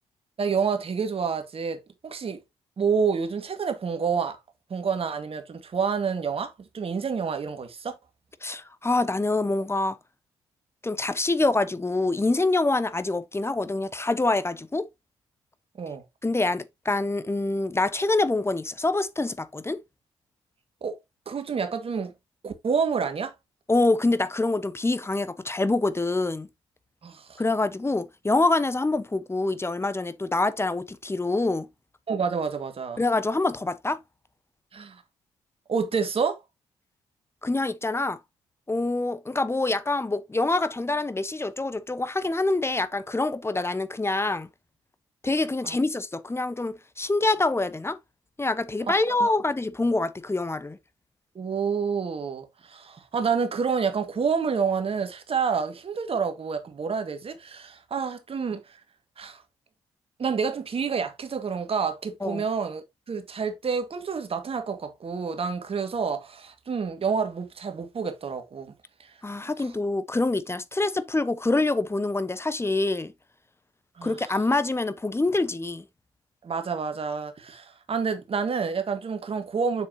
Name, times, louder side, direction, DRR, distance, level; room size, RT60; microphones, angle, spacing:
voice 1, 0.4-2.4 2.8-4.4 4.7-8.0 15.8-16.0 20.8-21.0 21.3-22.1 22.4-23.3 27.0-27.4 32.1-33.0 34.7-35.0 35.7-36.4 45.6-45.8 48.9-49.0 49.2-49.3 51.4-58.8 59.2-59.4 60.2-68.7 69.0-69.1 74.0-74.4 76.4-79.9, right 6 dB, 45° right, 1.8 m, -28 dB
voice 2, 8.4-10.0 10.8-14.9 16.2-19.8 23.7-26.5 27.4-31.7 33.0-34.0 37.4-38.2 38.7-44.5 45.2-48.0 48.4-50.8 62.2-62.4 69.2-73.1 74.0-75.8, left 2 dB, 20° left, 1.0 m, -25 dB
7.5 x 6.7 x 2.8 m
hypercardioid pair, 40°, 13 cm